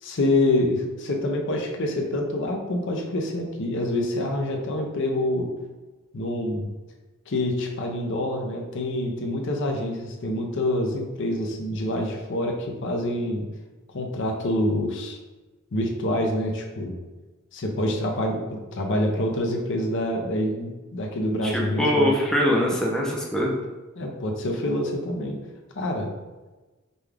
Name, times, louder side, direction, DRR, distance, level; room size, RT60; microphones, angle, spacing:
voice 1, 0.0-5.5 6.1-6.7 7.3-13.5 13.9-15.2 15.7-17.0 17.5-22.2 24.0-25.4 25.8-26.1, left 1 dB, 60° left, 1 dB, 0.6 m, -26 dB
voice 2, 21.4-23.6, left 1 dB, 5° left, -3 dB, 0.5 m, -23 dB
5.3 x 2.3 x 3.4 m, 1.2 s
head